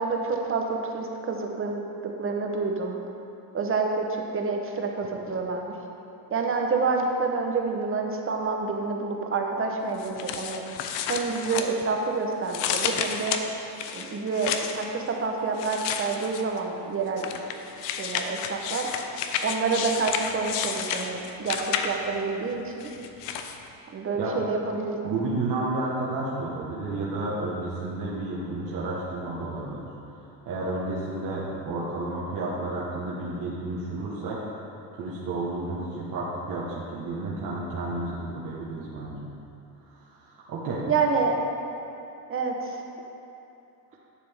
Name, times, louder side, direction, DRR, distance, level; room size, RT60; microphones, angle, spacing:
voice 1, 0.0-3.0 3.5-5.7 6.3-10.6 11.1-13.4 13.9-18.9 19.4-22.9 23.9-25.1 40.9-41.4 42.3-42.8, right 4 dB, 30° right, 2 dB, 0.9 m, -28 dB
sound 1, 10.0-12.1 12.5-14.9 15.6-16.6 17.2-22.2 22.8-23.6, left 8 dB, 85° left, 0.7 m, -31 dB
voice 2, 25.0-29.9 30.2-34.4 34.9-39.3 39.9-40.8, right 2 dB, 50° right, -7 dB, 1.4 m, -31 dB
11.5 x 6.8 x 3.5 m, 2.8 s
cardioid pair, 120°, 41 cm